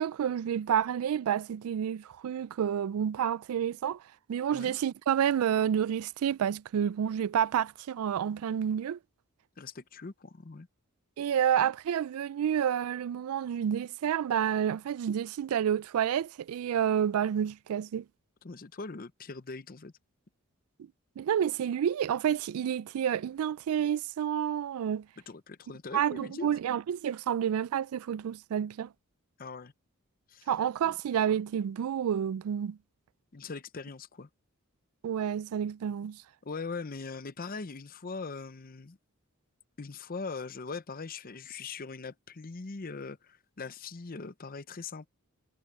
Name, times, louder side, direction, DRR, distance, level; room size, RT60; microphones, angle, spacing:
voice 1, 0.0-4.0 4.3-9.0 11.2-18.0 21.2-25.1 25.9-28.9 30.5-32.8 35.0-36.2, right 9 dB, 75° right, 0.3 m, -29 dB
voice 2, 9.6-10.7 18.4-19.9 25.3-26.5 29.4-29.7 30.3-30.5 30.8-30.9 33.3-34.3 36.4-39.0 39.8-45.1, left 4 dB, 40° left, 0.7 m, -41 dB
head